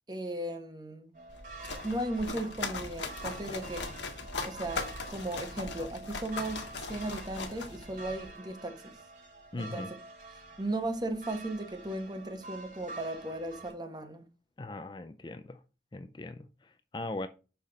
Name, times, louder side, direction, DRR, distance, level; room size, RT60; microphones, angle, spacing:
voice 1, 0.1-1.2 1.8-3.9 4.4-9.0 9.6-9.9 10.6-14.3, right 1 dB, 25° right, 1.0 m, -36 dB
sound 1, 1.1-13.7, right 3 dB, 45° right, 1.9 m, -48 dB
sound 2, 1.3-8.3, left 3 dB, 85° left, 1.2 m, -39 dB
voice 2, 9.5-9.9 14.6-15.6 15.9-17.3, left 2 dB, 25° left, 0.4 m, -39 dB
5.7 x 4.2 x 4.9 m
head